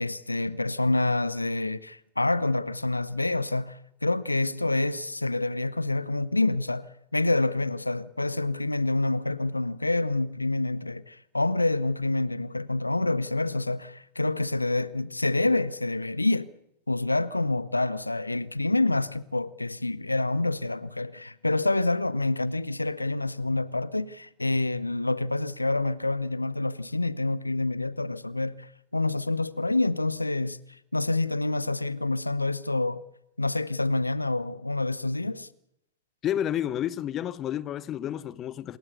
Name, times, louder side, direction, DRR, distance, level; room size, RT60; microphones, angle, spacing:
voice 1, 0.0-6.8 7.1-16.5 16.9-30.6 30.9-33.0 33.4-35.5, left 2 dB, 85° left, 0.7 m, -27 dB
voice 2, 36.2-38.8, left 11 dB, 30° left, 0.7 m, -30 dB
27.0 x 12.5 x 8.2 m
figure-of-eight pair, 90°, 0 cm